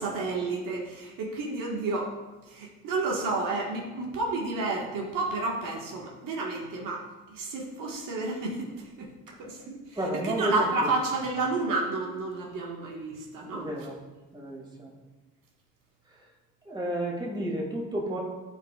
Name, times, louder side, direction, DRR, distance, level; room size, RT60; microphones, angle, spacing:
voice 1, 0.0-2.1 2.5-9.1 9.4-10.0 10.2-13.7, right 3 dB, 75° right, -2 dB, 1.5 m, -31 dB
voice 2, 10.0-10.9 13.5-14.0 14.3-14.9 16.1-16.3 16.6-18.2, right 1 dB, 15° right, -2 dB, 2.1 m, -32 dB
13.0 x 4.5 x 2.4 m, 1.2 s
cardioid pair, 95°, 32 cm